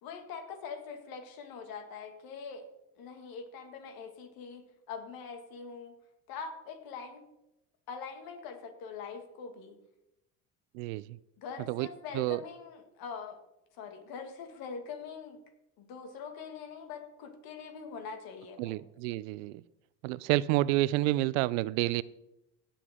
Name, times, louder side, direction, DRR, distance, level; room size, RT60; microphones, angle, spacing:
voice 1, 0.0-2.7 3.0-5.9 6.3-7.2 7.9-9.8 11.4-13.4 13.7-15.4 15.8-18.7, left 5 dB, 65° left, 6 dB, 1.9 m, -43 dB
voice 2, 10.7-11.2 11.7-11.9 12.1-12.4 18.6-19.6 20.0-22.0, right 17 dB, 80° right, 20 dB, 0.5 m, -29 dB
16.5 x 7.2 x 3.6 m, 0.90 s
supercardioid pair, 100°, 38 cm